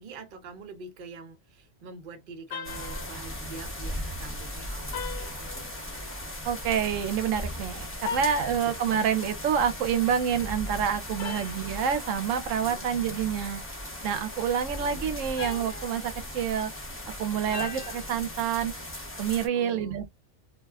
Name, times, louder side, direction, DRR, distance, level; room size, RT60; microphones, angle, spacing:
voice 1, 0.0-5.7 8.0-8.3 12.6-12.9 14.8-15.2 19.5-19.9, right 3 dB, 50° right, 0.8 m, -45 dB
sound 1, 2.5-3.3 4.9-6.1 8.0-8.9 11.2-11.8 15.2-16.5 17.5-18.2, left 5 dB, 65° left, 0.8 m, -39 dB
sound 2, 2.6-19.5, left 1 dB, 15° left, 0.6 m, -38 dB
voice 2, 6.4-13.6 14.0-16.7 17.2-18.7 19.2-20.1, right 8 dB, 85° right, 1.0 m, -28 dB
2.4 x 2.2 x 3.3 m
omnidirectional pair, 1.3 m